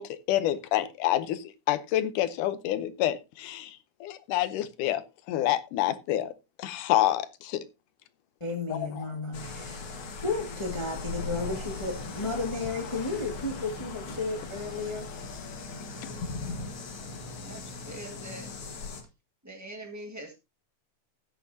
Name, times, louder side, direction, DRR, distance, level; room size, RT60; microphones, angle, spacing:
voice 1, 0.0-6.3 6.6-7.6 8.7-9.1, left 13 dB, 80° left, 2.3 m, -28 dB
voice 2, 8.4-9.9 10.2-15.1, left 3 dB, 15° left, 1.2 m, -33 dB
sound 1, 9.3-19.0, left 4 dB, 50° left, 2.0 m, -38 dB
voice 3, 17.4-18.5 19.4-20.4, right 1 dB, 15° right, 0.5 m, -43 dB
13.5 x 9.3 x 2.7 m
omnidirectional pair, 3.7 m